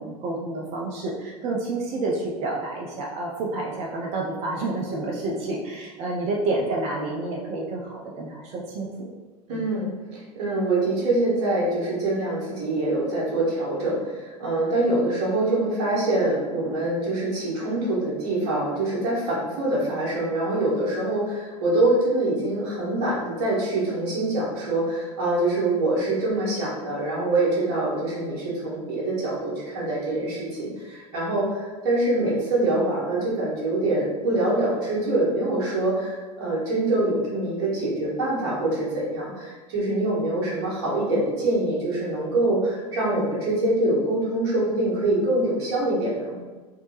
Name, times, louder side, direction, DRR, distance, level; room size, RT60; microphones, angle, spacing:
voice 1, 0.0-9.1 9.5-9.7, right 2 dB, 30° right, -2 dB, 0.5 m, -29 dB
voice 2, 9.5-46.4, right 2 dB, 50° right, -5 dB, 1.4 m, -25 dB
3.3 x 2.7 x 2.9 m, 1.3 s
figure-of-eight pair, 80°, 20 cm